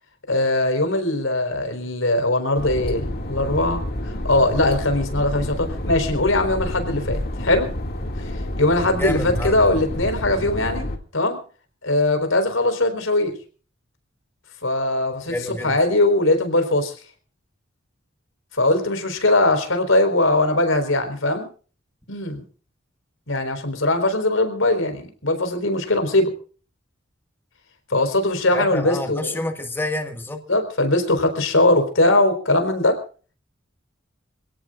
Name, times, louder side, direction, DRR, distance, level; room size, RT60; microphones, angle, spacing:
voice 1, 0.3-7.7 8.2-10.9 11.1-11.4 11.8-13.3 14.6-15.3 15.6-16.9 18.5-21.5 22.1-22.4 23.3-26.3 27.9-29.3 30.5-33.0, left 2 dB, 90° left, 7 dB, 4.4 m, -20 dB
sound 1, 2.6-11.0, left 1 dB, 50° left, 2.3 m, -29 dB
voice 2, 9.0-9.6 15.3-15.8 28.5-30.4, left 1 dB, 10° left, 4 dB, 1.8 m, -28 dB
27.0 x 17.5 x 2.5 m, 0.39 s
head